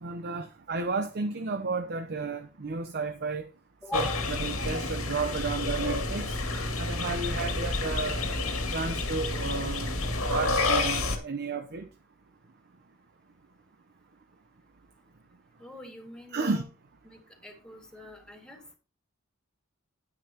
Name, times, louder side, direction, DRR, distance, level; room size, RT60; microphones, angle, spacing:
voice 1, 0.0-3.4 3.9-6.3 6.8-8.2 8.7-9.9 10.3-11.9 16.3-16.6, right 4 dB, 50° right, 0.7 m, -32 dB
voice 2, 3.8-4.3 15.6-16.6 17.0-18.8, left 1 dB, 5° left, 2.1 m, -42 dB
sound 1, 3.9-11.2, left 2 dB, 90° left, 2.1 m, -29 dB
9.9 x 9.7 x 2.9 m
head